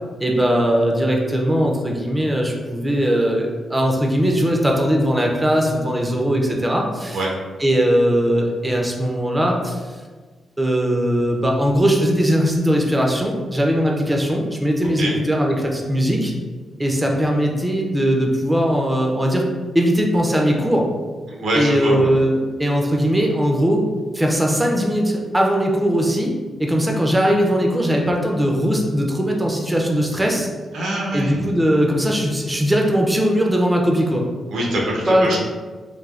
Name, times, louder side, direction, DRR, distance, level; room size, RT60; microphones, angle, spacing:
voice 1, 0.2-7.2 7.6-10.0 10.6-16.3 16.8-19.5 19.7-20.9 21.5-23.9 24.1-26.3 26.6-30.5 31.1-34.2 35.1-35.4, equal, 10° right, 0 dB, 0.4 m, -19 dB
voice 2, 21.3-22.1 30.7-31.4 34.5-35.4, right 1 dB, 85° right, -2 dB, 0.6 m, -23 dB
3.2 x 2.1 x 2.3 m, 1.4 s
cardioid pair, 105°, 0 cm